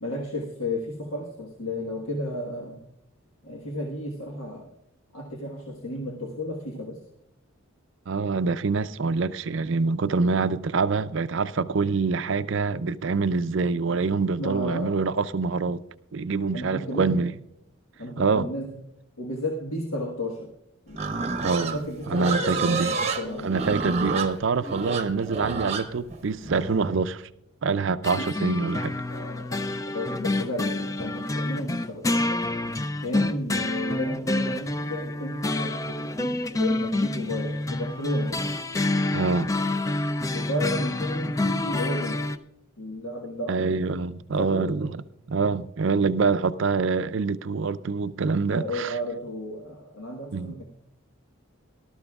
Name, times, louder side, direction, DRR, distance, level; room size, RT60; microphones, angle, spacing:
voice 1, 0.0-2.8 3.4-4.7 5.1-7.0 14.4-15.0 16.5-17.2 18.0-18.7 19.2-20.5 20.9-21.0 21.4-23.5 28.2-28.3 29.1-32.5 33.0-38.4 40.3-42.3 42.8-43.8 44.4-44.8 46.3-46.4 48.5-50.6, left 1 dB, 80° left, 1.4 m, -33 dB
voice 2, 8.1-15.8 16.1-17.3 18.2-18.5 21.4-21.8 22.1-23.1 23.4-27.3 27.6-28.9 39.1-39.5 43.5-44.9 45.3-48.9 50.3-50.5, right 4 dB, 60° right, 0.4 m, -25 dB
Livestock farm animals working animals, 20.9-27.0, right 4 dB, 30° right, 0.8 m, -30 dB
sound 1, 28.0-42.4, left 2 dB, 15° left, 0.3 m, -28 dB
19.0 x 12.5 x 2.4 m
head